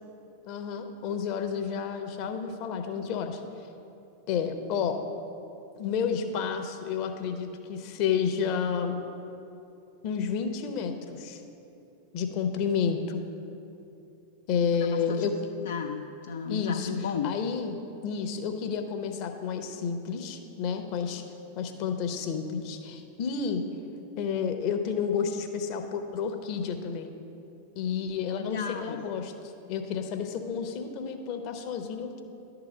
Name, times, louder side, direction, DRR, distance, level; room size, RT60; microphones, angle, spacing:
voice 1, 0.4-3.4 4.3-5.0 5.8-9.0 10.0-11.4 12.1-13.2 14.5-15.3 16.5-16.9 17.2-17.8 18.0-21.2 21.6-23.6 24.2-27.1 27.8-29.3 29.7-32.2, left 6 dB, 45° left, 6 dB, 0.8 m, -30 dB
voice 2, 14.7-15.3 15.6-17.3 28.3-29.0, left 7 dB, 65° left, 5 dB, 0.3 m, -34 dB
11.0 x 3.9 x 6.9 m, 2.8 s
figure-of-eight pair, 90°, 0 cm